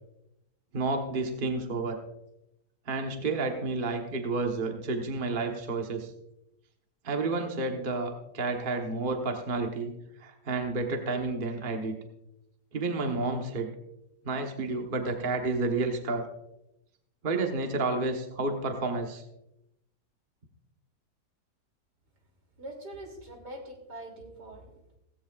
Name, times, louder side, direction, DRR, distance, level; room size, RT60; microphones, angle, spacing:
voice 1, 0.7-2.0 2.9-6.1 7.0-9.9 10.2-11.9 12.7-13.7 14.2-16.3 17.2-19.2, right 3 dB, 35° right, 3 dB, 1.3 m, -30 dB
voice 2, 22.6-25.0, right 1 dB, 70° right, 1 dB, 3.5 m, -44 dB
17.0 x 16.0 x 2.5 m, 0.85 s
omnidirectional pair, 1.8 m